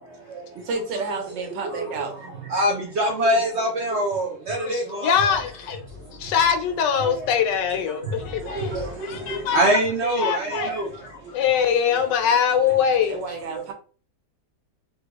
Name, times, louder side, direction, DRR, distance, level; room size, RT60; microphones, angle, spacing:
voice 1, 0.6-2.1 7.9-8.1 13.1-13.7, right 4 dB, 90° right, 1.4 m, -30 dB
voice 2, 2.5-5.4 7.1-7.3 8.5-8.9 9.3-10.9, right 1 dB, 70° right, 0.6 m, -24 dB
voice 3, 4.6-5.8 6.2-8.7 9.0-9.6 10.0-10.7 11.3-13.2, left 8 dB, 85° left, 1.3 m, -22 dB
3.4 x 2.3 x 2.9 m
omnidirectional pair, 1.8 m